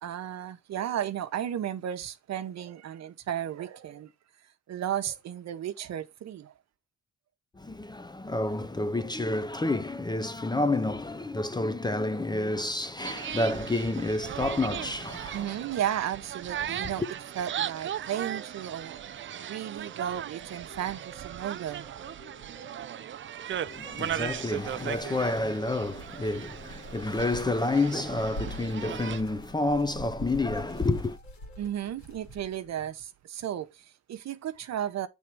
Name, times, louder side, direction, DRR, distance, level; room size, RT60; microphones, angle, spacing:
voice 1, 0.0-4.1 4.7-6.5 15.3-17.0 17.4-19.0 19.4-22.1 31.6-35.1, right 10 dB, 60° right, 0.9 m, -34 dB
voice 2, 7.5-15.6 16.6-16.8 23.7-31.2, left 2 dB, 15° left, 0.5 m, -29 dB
sound 1, 13.0-29.2, right 10 dB, 40° right, 0.5 m, -37 dB
sound 2, 15.7-31.7, right 1 dB, 30° left, 1.8 m, -55 dB
sound 3, 23.5-32.8, equal, 70° left, 2.2 m, -45 dB
8.4 x 3.6 x 4.5 m
cardioid pair, 90°, 30 cm